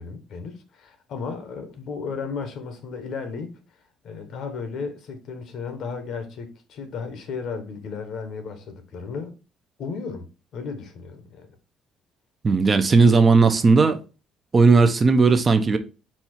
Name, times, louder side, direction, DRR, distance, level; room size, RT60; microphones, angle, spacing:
voice 1, 0.0-3.6 4.0-9.4 9.8-11.5, left 5 dB, 60° left, 0.9 m, -34 dB
voice 2, 12.4-14.0 14.5-15.8, right 4 dB, 25° right, 0.5 m, -16 dB
4.2 x 2.4 x 4.4 m
cardioid pair, 120°, 0 cm